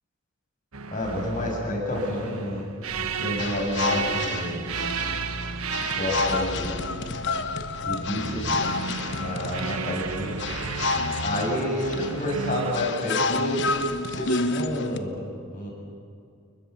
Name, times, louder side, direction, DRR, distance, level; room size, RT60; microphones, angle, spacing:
sound 1, 0.7-12.7, right 5 dB, 85° right, 1.3 m, -33 dB
voice 1, 0.9-2.7 3.0-4.6 5.7-6.8 7.8-8.7 9.2-10.4 11.2-13.6 14.1-15.2 15.5-15.7, left 1 dB, 40° left, -1 dB, 7.5 m, -29 dB
sound 2, 3.4-15.0, left 3 dB, 55° left, 1.1 m, -30 dB
29.5 x 21.5 x 7.1 m, 2.4 s
head